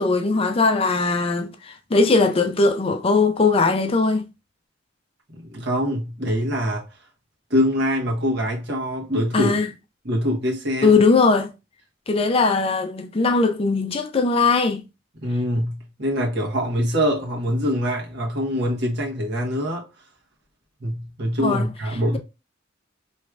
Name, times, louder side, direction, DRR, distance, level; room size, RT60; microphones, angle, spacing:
voice 1, 0.0-4.3 9.3-9.7 10.8-11.5 12.1-14.8 21.4-22.2, left 3 dB, 30° left, 0.4 m, -20 dB
voice 2, 5.3-6.9 7.5-9.6 10.0-11.0 15.2-19.8 20.8-22.2, equal, 60° right, 1.3 m, -24 dB
4.6 x 3.1 x 2.4 m
head